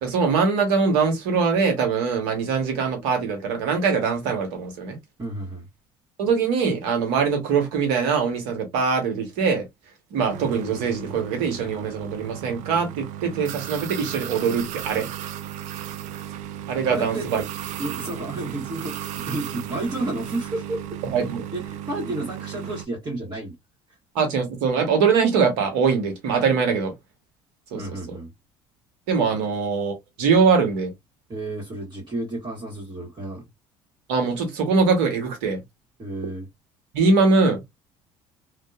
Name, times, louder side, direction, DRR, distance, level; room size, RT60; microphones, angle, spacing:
voice 1, 0.0-5.0 6.2-9.6 10.1-15.1 16.7-17.4 21.0-21.4 24.1-26.9 27.7-27.8 28.1-28.2 29.1-30.9 34.1-35.6 36.9-37.6, right 5 dB, 80° right, 1.1 m, -22 dB
voice 2, 5.2-5.6 16.9-17.3 17.8-21.0 21.5-23.5 27.7-28.3 29.3-29.4 31.3-33.4 36.0-36.5, right 2 dB, 35° right, 1.4 m, -31 dB
sound 1, 10.3-22.9, right 10 dB, 65° right, 0.4 m, -35 dB
2.7 x 2.2 x 2.3 m
supercardioid pair, 75°, 13 cm